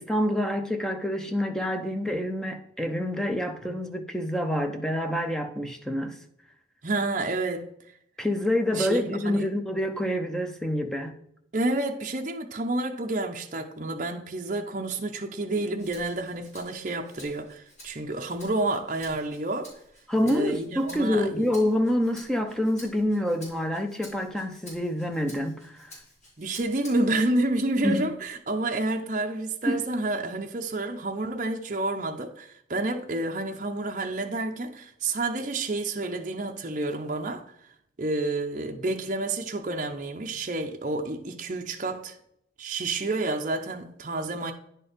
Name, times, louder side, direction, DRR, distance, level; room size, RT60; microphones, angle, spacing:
voice 1, 0.0-6.2 8.2-11.2 20.1-25.9 27.8-28.1 29.7-29.8, left 1 dB, 5° left, 0.7 m, -27 dB
voice 2, 6.8-7.6 8.7-9.5 11.5-19.7 20.3-21.5 26.4-37.4 38.0-42.1 42.6-44.5, right 2 dB, 40° right, 0.7 m, -29 dB
Rattle (instrument), 15.8-27.2 27.7-28.9, left 1 dB, 40° left, 3.4 m, -51 dB
9.9 x 4.6 x 5.1 m
head